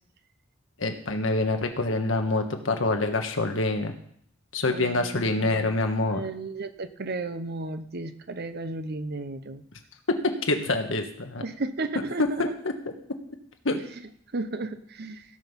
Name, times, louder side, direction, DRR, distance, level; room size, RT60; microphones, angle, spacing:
voice 1, 0.8-3.9 4.5-6.2 10.5-11.4 12.2-12.9 13.6-13.8, left 2 dB, 70° left, 5 dB, 1.5 m, -26 dB
voice 2, 4.7-5.8 6.1-9.6 11.4-12.5 14.3-15.2, right 2 dB, 55° right, 10 dB, 0.8 m, -34 dB
16.5 x 6.3 x 5.4 m, 0.64 s
head